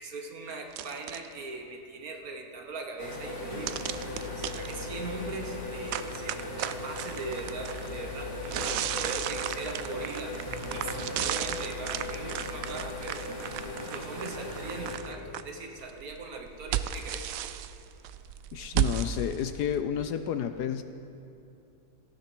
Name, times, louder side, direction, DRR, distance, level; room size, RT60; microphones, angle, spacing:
voice 1, 0.0-10.4 10.7-13.3 13.9-17.3, right 3 dB, 55° right, 3 dB, 1.5 m, -40 dB
sound 1, 0.7-1.3 3.7-4.7 5.9-7.9 8.4-15.4 15.8-19.8, right 10 dB, 80° right, 0.7 m, -34 dB
sound 2, 3.0-15.0, left 2 dB, 40° left, 2.8 m, -37 dB
voice 2, 18.5-20.8, left 9 dB, 70° left, 9 dB, 1.0 m, -31 dB
17.5 x 14.0 x 4.5 m, 2.7 s
omnidirectional pair, 2.0 m